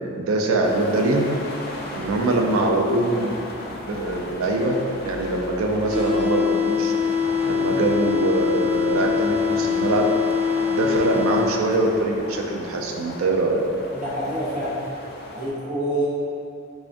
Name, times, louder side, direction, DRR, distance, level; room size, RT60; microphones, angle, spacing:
voice 1, 0.0-1.3 1.9-3.4 3.7-6.9 7.5-10.1 10.7-13.6, right 2 dB, 85° right, 1 dB, 0.4 m, -23 dB
sound 1, 0.6-15.5, left 1 dB, 50° left, 0.4 m, -36 dB
sound 2, 5.9-11.9, left 6 dB, 10° right, 0.7 m, -23 dB
voice 2, 13.9-14.8 15.3-16.1, right 1 dB, 40° right, -8 dB, 0.8 m, -27 dB
3.5 x 3.4 x 2.5 m, 2.7 s
head